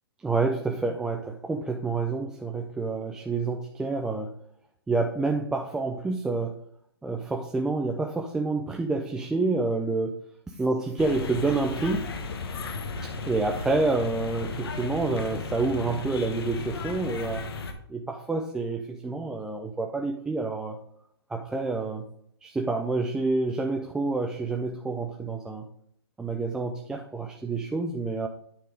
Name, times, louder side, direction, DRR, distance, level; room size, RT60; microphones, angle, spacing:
voice 1, 0.2-4.3 4.9-6.6 7.0-10.2 10.6-12.1 13.3-17.5 17.9-20.8 21.3-22.1 22.4-25.7 26.2-28.3, right 3 dB, 5° right, 2 dB, 0.4 m, -28 dB
sound 1, 11.0-17.7, left 3 dB, 65° left, 1.3 m, -35 dB
9.3 x 3.6 x 5.1 m, 0.66 s
hypercardioid pair, 145°, 14 cm